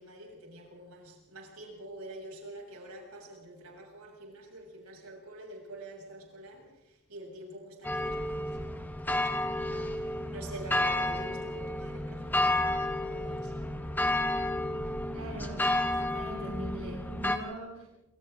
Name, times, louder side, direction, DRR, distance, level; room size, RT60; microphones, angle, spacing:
voice 1, 0.0-8.6 9.0-13.6, right 1 dB, 90° right, 7.4 m, -46 dB
sound 1, 7.8-17.4, left 1 dB, 10° left, 1.5 m, -31 dB
voice 2, 15.1-15.7 16.0-17.9, right 1 dB, 65° right, 3.4 m, -41 dB
27.5 x 26.5 x 3.8 m
head